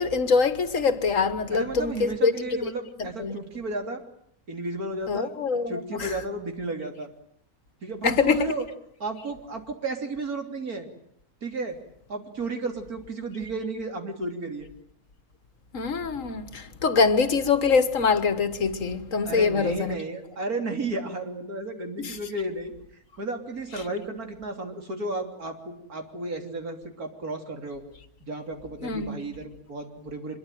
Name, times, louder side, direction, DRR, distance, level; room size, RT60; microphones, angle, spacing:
voice 1, 0.0-2.3 3.0-3.4 5.1-6.1 8.0-8.5 15.7-20.0 22.0-22.2 28.8-29.2, left 5 dB, 60° left, 1.8 m, -24 dB
voice 2, 1.5-4.0 4.5-5.3 5.7-7.1 7.8-8.7 9.0-10.9 11.4-11.8 12.1-14.7 19.3-27.8 28.2-30.4, right 2 dB, 85° right, 3.8 m, -33 dB
24.5 x 22.5 x 9.3 m
omnidirectional pair, 1.5 m